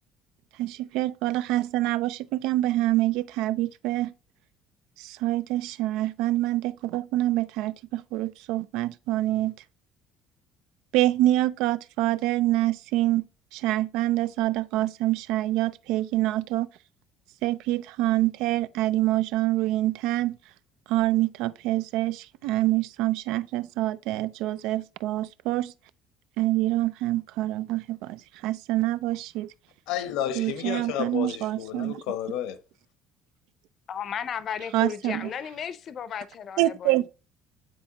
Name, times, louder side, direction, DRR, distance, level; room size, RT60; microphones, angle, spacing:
voice 1, 0.6-4.1 5.0-9.5 10.9-13.2 13.5-16.7 17.4-20.4 20.9-25.7 26.4-29.5 30.3-32.0 34.7-35.3 36.6-37.1, right 16 dB, 80° right, 0.4 m, -26 dB
voice 2, 29.9-32.6, left 10 dB, 85° left, 0.9 m, -31 dB
voice 3, 33.9-37.1, left 8 dB, 35° left, 0.6 m, -34 dB
9.2 x 4.3 x 2.9 m
cardioid pair, 165°, 0 cm